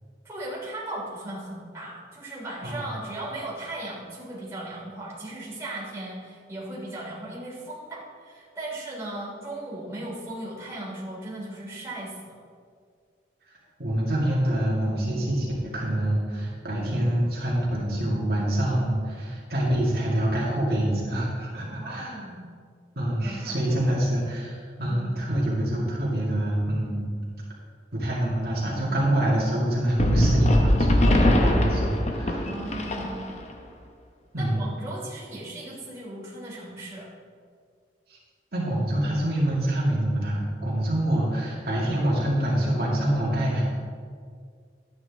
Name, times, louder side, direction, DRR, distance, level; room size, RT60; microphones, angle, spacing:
voice 1, 0.2-12.4 21.7-22.4 23.2-23.8 24.9-25.1 32.4-33.2 34.4-37.1, right 1 dB, 15° right, -7 dB, 2.9 m, -37 dB
voice 2, 13.8-22.2 23.0-27.1 27.9-32.5 34.3-34.6 38.1-38.2 38.5-43.6, right 1 dB, 60° right, -6 dB, 2.1 m, -26 dB
sound 1, 30.0-33.5, left 1 dB, 40° left, 0.9 m, -22 dB
11.5 x 8.9 x 3.5 m, 2.1 s
head